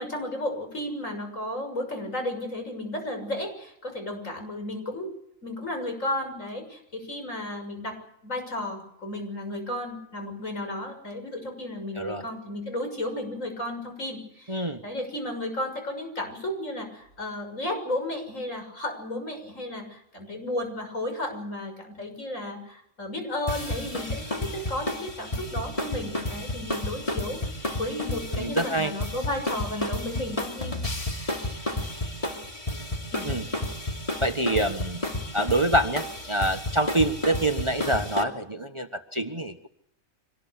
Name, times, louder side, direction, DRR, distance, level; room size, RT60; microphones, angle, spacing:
voice 1, 0.0-5.1 5.4-8.0 8.2-30.8 33.1-33.3, left 1 dB, 70° left, 5 dB, 7.0 m, -33 dB
voice 2, 14.5-14.8 28.3-28.9 33.2-33.5 34.2-35.0 35.3-39.7, right 1 dB, 20° right, 8 dB, 1.3 m, -26 dB
sound 1, 23.5-38.2, left 1 dB, 25° left, 3.0 m, -32 dB
25.5 x 20.0 x 8.3 m, 0.73 s
omnidirectional pair, 1.4 m